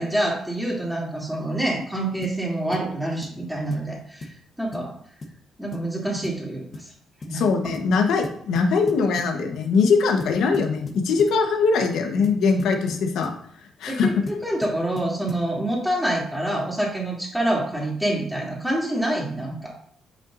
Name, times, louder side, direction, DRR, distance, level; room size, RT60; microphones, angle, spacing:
voice 1, 0.0-4.3 4.6-4.9 5.6-6.9 7.3-7.4 13.9-19.7, right 1 dB, ahead, -4 dB, 2.8 m, -26 dB
sound 1, 2.2-2.4 2.7-2.9 3.2-3.4 3.7-3.9 4.2-4.4 4.7-4.9 5.2-5.4 5.7-5.9 6.2-6.4 6.7-6.9 7.2-7.4 7.7-7.9 8.2-9.4 10.2-11.4 12.2-13.4 14.3-15.5, left 2 dB, 45° left, 1.1 m, -38 dB
voice 2, 7.3-13.3 13.8-14.1, left 4 dB, 80° left, 4 dB, 1.2 m, -21 dB
7.8 x 5.9 x 2.6 m, 0.63 s
cardioid pair, 90°, 0 cm